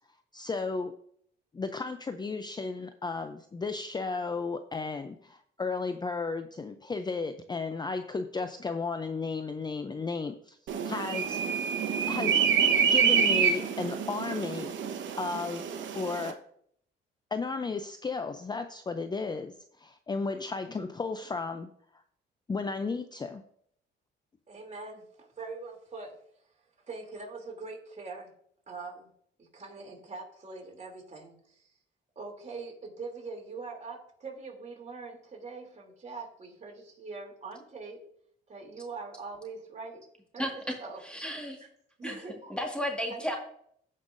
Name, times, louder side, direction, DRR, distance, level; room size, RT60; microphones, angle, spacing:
voice 1, 0.3-1.0 1.5-10.6 10.8-11.4 12.1-12.5 12.9-16.4 17.3-21.7 22.5-23.4, left 4 dB, 20° left, 9 dB, 0.5 m, -34 dB
sound 1, 10.7-16.3, right 7 dB, 70° right, 1.0 m, -27 dB
voice 2, 24.5-26.1 26.9-28.3 28.7-29.1 29.4-31.7 32.1-38.0 38.5-40.0 40.3-40.4 40.8-41.0 41.6-41.7 42.0-42.5 43.1-43.4, right 4 dB, 35° right, 0 dB, 3.0 m, -42 dB
voice 3, 40.4-40.8 41.0-41.6 42.0-42.2 42.5-43.4, equal, 5° left, 1 dB, 1.8 m, -33 dB
16.0 x 5.5 x 2.6 m, 0.66 s
cardioid pair, 90°, 20 cm